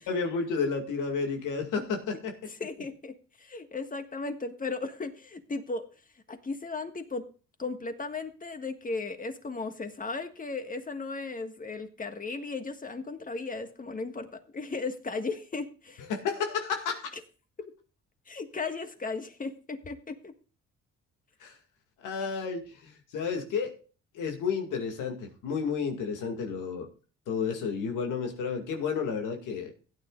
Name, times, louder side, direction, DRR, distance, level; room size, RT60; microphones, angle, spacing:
voice 1, 0.1-2.4 16.0-17.1 21.4-21.6 22.0-23.7 24.1-26.9 27.3-29.7, left 5 dB, 85° left, 4 dB, 2.2 m, -31 dB
voice 2, 2.5-5.9 6.3-7.3 7.6-16.0 18.3-20.3, left 3 dB, 25° left, 8 dB, 1.6 m, -36 dB
16.0 x 9.6 x 2.4 m, 0.36 s
cardioid pair, 90°, 30 cm